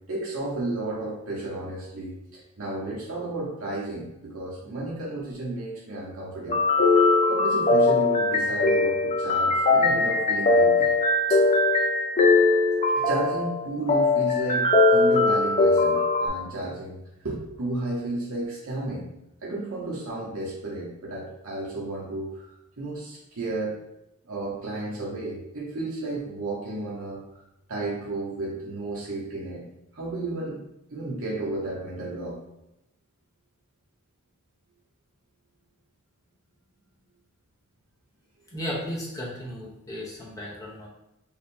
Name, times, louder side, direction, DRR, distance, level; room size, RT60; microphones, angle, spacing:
voice 1, 0.1-6.6 7.3-10.9 11.3-11.4 12.9-19.1 19.4-23.8 24.2-27.2 27.7-29.6 29.9-30.6 30.9-32.4, right 2 dB, 65° right, -5 dB, 0.9 m, -32 dB
sound 1, 6.5-16.3, left 3 dB, 30° left, 0.5 m, -21 dB
voice 2, 38.5-40.9, equal, 15° left, -5 dB, 0.9 m, -35 dB
3.5 x 2.2 x 4.3 m, 0.87 s
head